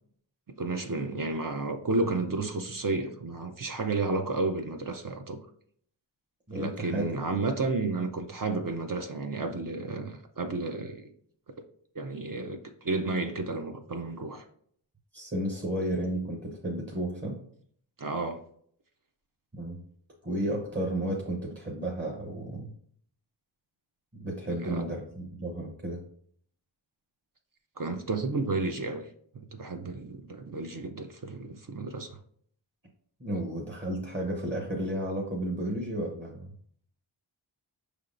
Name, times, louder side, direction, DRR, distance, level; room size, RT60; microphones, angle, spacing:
voice 1, 0.6-5.4 6.5-11.1 12.0-14.4 18.0-18.4 24.6-24.8 27.8-29.1 29.3-32.2, right 3 dB, 45° right, 0.5 m, -32 dB
voice 2, 6.5-7.0 15.1-17.4 19.6-19.8 20.2-22.7 24.2-26.0 33.2-36.5, right 1 dB, 25° right, 0.8 m, -32 dB
5.6 x 3.4 x 2.5 m
wide cardioid pair, 50°, 48 cm